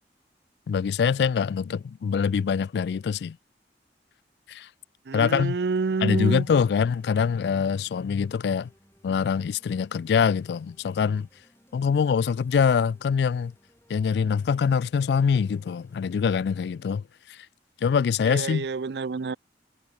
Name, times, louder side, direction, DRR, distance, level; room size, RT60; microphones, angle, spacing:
voice 1, 0.7-3.4 4.5-4.7 5.1-5.6 6.0-8.7 9.0-11.3 11.7-13.5 13.9-17.0 17.8-18.7, left 6 dB, 70° left, 0.3 m, -24 dB
voice 2, 5.1-6.4 18.2-19.4, right 4 dB, 70° right, 0.5 m, -28 dB
sound 1, 6.2-16.3, equal, 15° left, 6.2 m, -62 dB
head